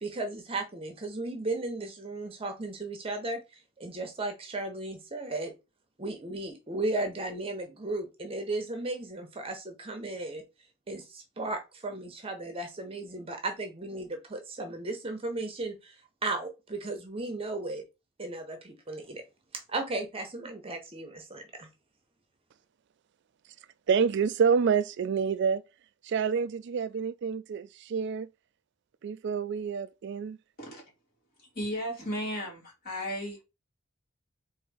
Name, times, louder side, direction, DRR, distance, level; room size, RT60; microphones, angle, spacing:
voice 1, 0.0-5.5 6.0-10.4 10.9-17.8 18.2-19.2 19.5-21.7, right 2 dB, 25° right, 0.8 m, -35 dB
voice 2, 23.9-25.6 26.0-28.3 29.0-30.4, right 6 dB, 55° right, 0.3 m, -28 dB
voice 3, 31.5-33.4, equal, 45° left, 2.4 m, -34 dB
3.9 x 2.7 x 4.8 m
head